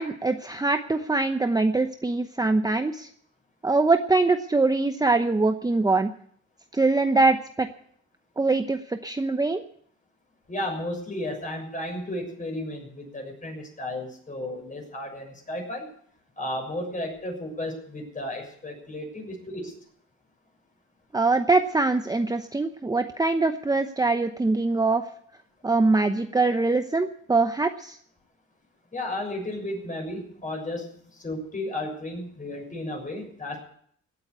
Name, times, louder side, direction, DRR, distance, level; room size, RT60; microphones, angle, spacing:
voice 1, 0.0-3.1 3.6-6.1 6.7-7.7 8.4-9.6 21.1-25.0 25.6-28.0, right 3 dB, 15° right, 8 dB, 0.9 m, -23 dB
voice 2, 10.5-15.9 16.4-19.7 28.9-33.6, left 1 dB, 25° left, 2 dB, 6.7 m, -33 dB
17.5 x 8.6 x 8.3 m, 0.64 s
cardioid pair, 90°, 30 cm